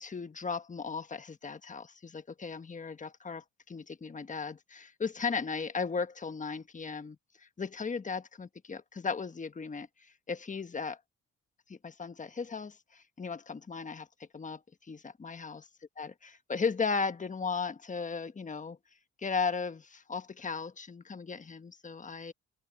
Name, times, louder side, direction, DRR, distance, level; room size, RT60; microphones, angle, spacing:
voice 1, 0.0-11.0 11.7-14.1 14.3-15.7 16.0-18.8 19.2-22.3, left 5 dB, 25° left, 1.3 m, -36 dB
cardioid pair, 90°, 30 cm